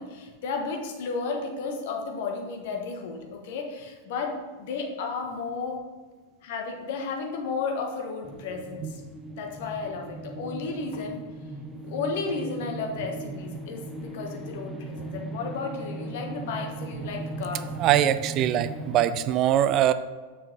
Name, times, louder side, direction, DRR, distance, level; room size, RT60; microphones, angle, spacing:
voice 1, 0.0-5.8 6.4-9.0 9.4-11.2 11.8-17.6, left 4 dB, 50° left, 2 dB, 1.3 m, -33 dB
sound 1, 8.2-19.1, right 2 dB, 10° right, 0.9 m, -38 dB
voice 2, 17.8-19.9, right 11 dB, 35° right, 13 dB, 0.4 m, -22 dB
7.1 x 6.1 x 3.9 m, 1.4 s
figure-of-eight pair, 90°, 0 cm